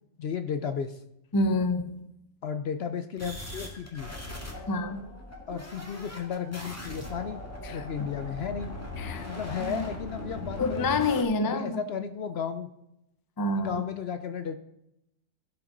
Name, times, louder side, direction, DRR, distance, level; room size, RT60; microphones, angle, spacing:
voice 1, 0.2-1.0 2.4-4.2 5.5-7.4 7.7-8.7 9.3-11.0 11.4-12.7 13.6-14.6, left 7 dB, 60° left, 9 dB, 0.7 m, -34 dB
voice 2, 1.3-2.1 4.7-5.0 7.6-8.1 9.0-9.3 9.6-9.8 10.6-11.8 13.4-13.7, left 2 dB, 30° left, 9 dB, 0.4 m, -28 dB
sound 1, 3.2-11.2, left 1 dB, 10° left, 1.7 m, -39 dB
16.0 x 6.2 x 3.8 m, 0.83 s
omnidirectional pair, 1.5 m